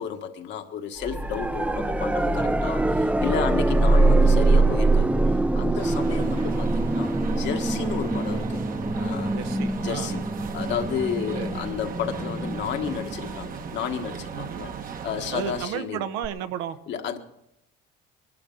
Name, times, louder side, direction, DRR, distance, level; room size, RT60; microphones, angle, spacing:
voice 1, 0.0-5.2 5.6-8.6 9.0-9.3 9.8-10.2 10.5-14.7 15.0-16.0 16.9-17.2, left 8 dB, 60° left, 1.6 m, -32 dB
sound 1, 1.0-13.9 16.2-16.3, right 2 dB, 5° right, 0.5 m, -24 dB
sound 2, 5.8-15.6, right 6 dB, 45° right, 1.1 m, -37 dB
voice 2, 9.3-10.1 11.3-11.6 14.3-14.6 15.3-16.8, right 10 dB, 80° right, 1.1 m, -33 dB
22.0 x 12.0 x 3.9 m
cardioid pair, 100°, 21 cm